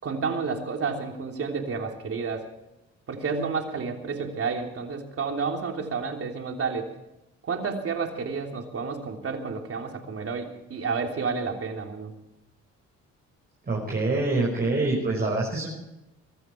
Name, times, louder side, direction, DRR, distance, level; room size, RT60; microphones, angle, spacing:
voice 1, 0.0-2.5 3.1-6.9 7.4-12.2, right 5 dB, 50° right, 3 dB, 3.4 m, -30 dB
voice 2, 13.7-15.7, right 2 dB, 30° right, -2 dB, 5.3 m, -25 dB
23.0 x 14.0 x 4.6 m, 0.91 s
cardioid pair, 90°, 30 cm